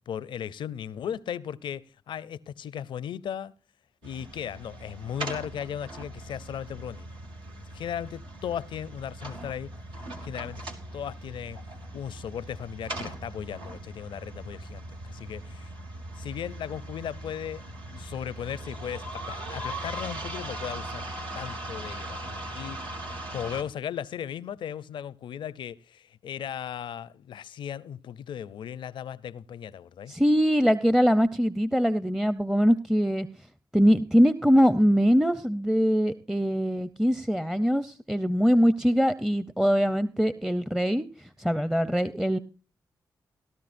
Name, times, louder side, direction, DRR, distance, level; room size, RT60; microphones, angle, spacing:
voice 1, 0.1-3.5 4.0-7.1 7.5-9.7 10.2-10.7 10.9-15.7 16.2-17.6 17.9-21.0 21.3-30.1, left 9 dB, 80° left, 0.5 m, -37 dB
sound 1, 4.0-23.6, right 1 dB, 80° right, 2.1 m, -39 dB
voice 2, 30.1-33.3 33.7-41.1 41.4-42.4, equal, 5° right, 0.6 m, -22 dB
18.0 x 12.5 x 2.6 m
supercardioid pair, 45°, 8 cm